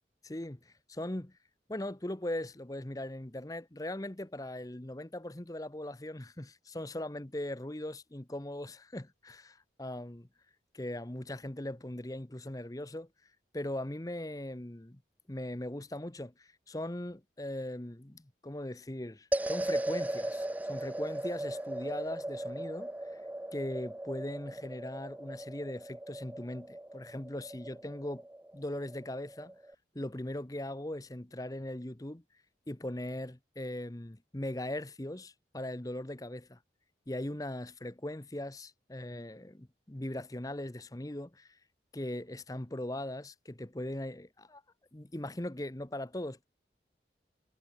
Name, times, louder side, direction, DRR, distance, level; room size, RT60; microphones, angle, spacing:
voice 1, 0.2-1.3 1.7-10.3 10.7-13.1 13.5-15.0 15.3-23.2 23.5-28.3 28.5-29.5 29.9-32.2 32.7-36.6 37.1-41.6 41.9-44.6 44.9-46.4, left 1 dB, 20° left, 0.9 m, -39 dB
sound 1, 19.3-29.7, right 1 dB, 10° right, 0.3 m, -38 dB
head